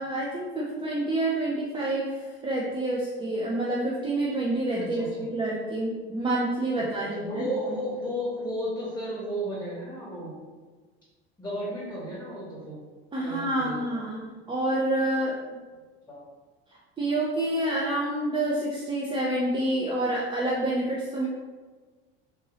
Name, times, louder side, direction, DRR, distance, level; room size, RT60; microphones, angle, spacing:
voice 1, 0.0-7.5 13.1-15.4 17.0-21.3, right 1 dB, 15° right, -4 dB, 0.5 m, -28 dB
voice 2, 4.7-5.2 7.1-10.3 11.4-12.8 13.2-14.0 16.1-16.2, equal, 5° left, -6 dB, 1.2 m, -33 dB
3.7 x 2.7 x 3.0 m, 1.4 s
hypercardioid pair, 95°, 30 cm